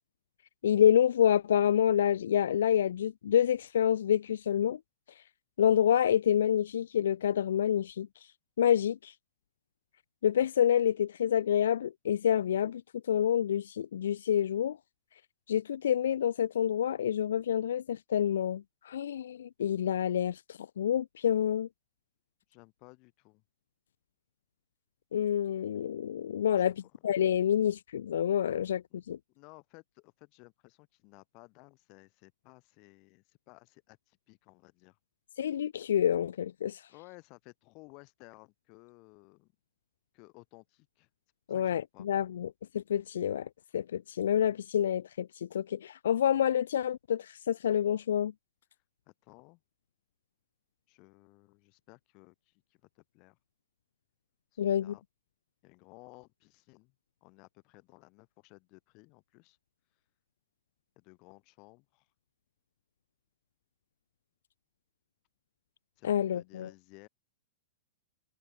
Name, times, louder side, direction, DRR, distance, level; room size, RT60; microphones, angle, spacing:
voice 1, 0.6-4.8 5.6-8.1 8.6-9.1 10.2-12.8 13.1-14.8 15.5-21.7 25.1-26.7 27.0-29.2 35.4-36.8 41.5-42.5 42.7-48.3 54.6-54.9 66.0-66.7, left 9 dB, 75° left, 0.3 m, -28 dB
voice 2, 22.5-23.4 26.5-27.0 28.9-29.0 29.3-35.0 36.9-39.5 40.1-41.1 41.5-42.1 49.1-49.6 50.9-53.4 54.5-55.0 55.6-56.9 57.2-59.6 61.0-62.1 66.0-67.1, left 29 dB, 30° left, 5.6 m, -57 dB
supercardioid pair, 175°, 0 cm